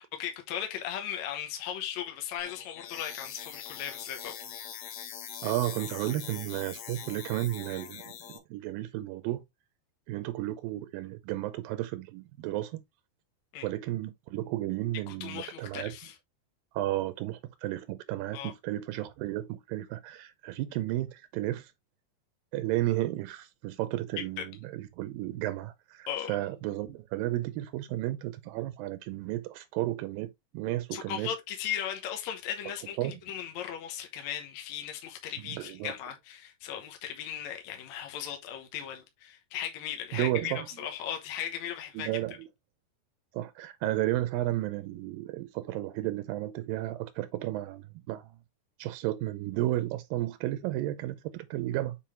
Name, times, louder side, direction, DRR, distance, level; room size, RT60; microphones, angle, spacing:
voice 1, 0.2-4.3 13.5-13.7 15.1-16.2 18.3-18.5 24.2-24.5 26.1-26.3 30.9-42.1, left 10 dB, 65° left, 2.0 m, -37 dB
sound 1, 2.4-8.4, left 9 dB, 80° left, 3.2 m, -43 dB
voice 2, 5.4-9.4 10.1-12.8 13.6-15.9 16.7-21.7 22.5-30.3 30.5-31.3 33.0-33.2 35.5-35.9 40.1-40.7 42.0-42.5 43.3-48.3 48.8-52.0, right 15 dB, 85° right, 2.3 m, -33 dB
7.5 x 4.4 x 3.2 m
omnidirectional pair, 4.1 m